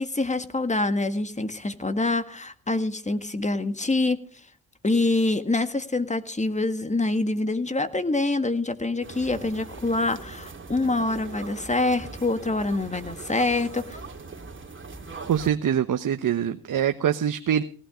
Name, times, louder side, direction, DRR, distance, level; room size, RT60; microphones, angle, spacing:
voice 1, 0.0-4.2 4.8-14.0, left 2 dB, 20° left, 11 dB, 1.8 m, -25 dB
sound 1, 9.0-15.5, right 4 dB, 30° right, 2.8 m, -41 dB
voice 2, 15.2-17.6, right 9 dB, 60° right, 7 dB, 1.1 m, -24 dB
18.5 x 12.0 x 5.1 m, 0.40 s
cardioid pair, 65°, 37 cm